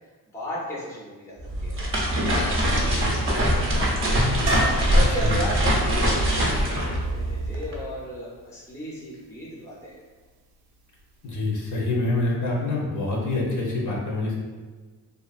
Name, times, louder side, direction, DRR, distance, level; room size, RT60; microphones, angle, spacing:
voice 1, 0.3-1.8 2.3-4.2 4.9-10.0, equal, 5° left, -5 dB, 0.6 m, -35 dB
sound 1, 1.4-7.8, equal, 30° right, 0.6 m, -23 dB
sound 2, 4.5-8.3 11.0-11.1 11.3-11.4, right 1 dB, 70° right, 0.6 m, -35 dB
voice 2, 11.2-14.4, left 2 dB, 50° left, -3 dB, 0.7 m, -26 dB
2.6 x 2.4 x 2.4 m, 1.4 s
cardioid pair, 85°, 39 cm